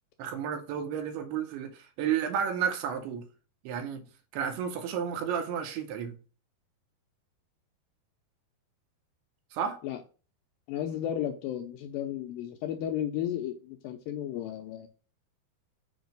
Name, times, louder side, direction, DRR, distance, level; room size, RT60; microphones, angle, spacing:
voice 1, 0.2-3.2 3.6-4.0 4.3-6.2 9.5-9.8, right 8 dB, 90° right, 2.8 m, -32 dB
voice 2, 10.7-14.9, left 10 dB, 85° left, 2.0 m, -34 dB
7.1 x 2.7 x 5.2 m
omnidirectional pair, 4.5 m